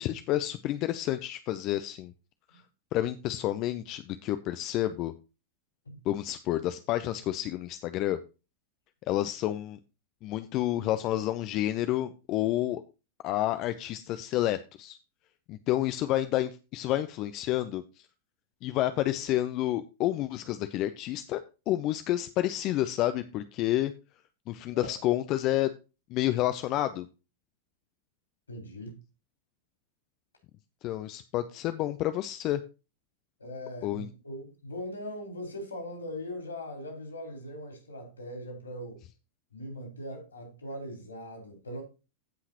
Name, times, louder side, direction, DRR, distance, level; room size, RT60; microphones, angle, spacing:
voice 1, 0.0-2.1 2.9-5.1 6.1-8.2 9.1-9.8 10.2-12.8 13.2-15.0 15.5-17.8 18.6-21.4 21.7-23.9 24.5-25.7 26.1-27.1 30.8-32.6 33.8-34.1, left 14 dB, 40° left, 0.6 m, -29 dB
voice 2, 28.5-29.0 33.4-39.0 39.5-41.8, equal, 75° left, 4.7 m, -40 dB
16.0 x 5.8 x 3.0 m
figure-of-eight pair, 90°, 0 cm